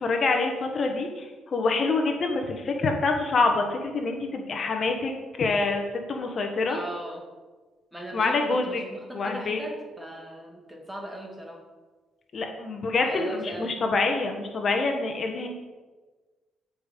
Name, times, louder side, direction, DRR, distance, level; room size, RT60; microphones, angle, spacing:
voice 1, 0.0-5.8 6.1-6.8 8.1-8.8 9.1-9.6 12.3-15.5, left 3 dB, 45° left, 3 dB, 1.2 m, -26 dB
voice 2, 6.7-7.3 7.9-11.7 13.0-13.8, right 1 dB, 10° right, 1 dB, 2.0 m, -38 dB
13.5 x 5.3 x 5.1 m, 1.3 s
cardioid pair, 110°, 0 cm